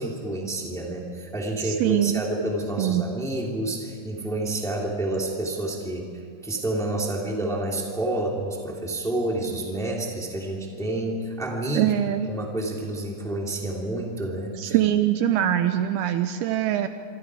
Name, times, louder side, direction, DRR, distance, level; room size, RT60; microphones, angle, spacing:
voice 1, 0.0-11.9 12.3-14.8, right 1 dB, ahead, -1 dB, 2.0 m, -29 dB
voice 2, 1.6-2.2 2.8-3.1 11.8-12.3 14.6-16.9, right 11 dB, 80° right, 9 dB, 2.5 m, -23 dB
26.0 x 25.0 x 4.9 m, 2.5 s
omnidirectional pair, 4.8 m